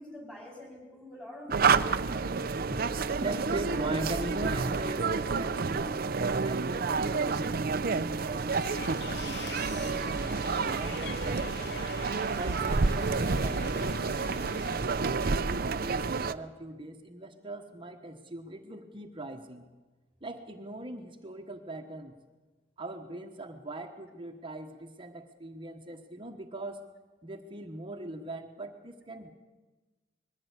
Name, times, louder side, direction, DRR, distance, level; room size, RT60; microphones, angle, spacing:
voice 1, 0.0-2.2, left 1 dB, 5° left, 2 dB, 4.7 m, -47 dB
sound 1, 1.5-16.3, right 4 dB, 55° right, 0.6 m, -29 dB
voice 2, 3.2-6.1 6.4-11.6 12.4-14.0 14.5-19.7 20.2-22.1 22.8-26.9 27.2-29.3, right 2 dB, 30° right, 5 dB, 1.2 m, -40 dB
sound 2, 8.5-14.8, left 6 dB, 65° left, 0.6 m, -44 dB
21.0 x 15.0 x 8.3 m, 1.2 s
head